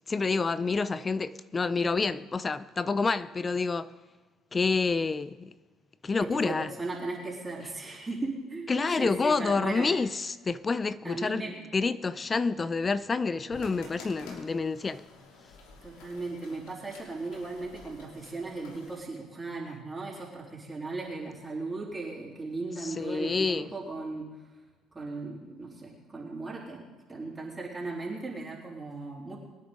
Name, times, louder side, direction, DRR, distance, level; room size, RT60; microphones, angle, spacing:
voice 1, 0.1-3.9 4.5-5.5 6.0-6.7 8.7-11.4 11.7-15.0 22.8-23.7, left 4 dB, 30° left, 0.5 m, -28 dB
voice 2, 6.2-9.9 11.0-11.5 15.8-24.5 24.9-26.8 27.1-29.4, right 3 dB, 25° right, 3.5 m, -37 dB
sound 1, 13.5-19.0, left 3 dB, 85° left, 2.8 m, -50 dB
22.5 x 9.5 x 3.8 m
supercardioid pair, 75°, 0 cm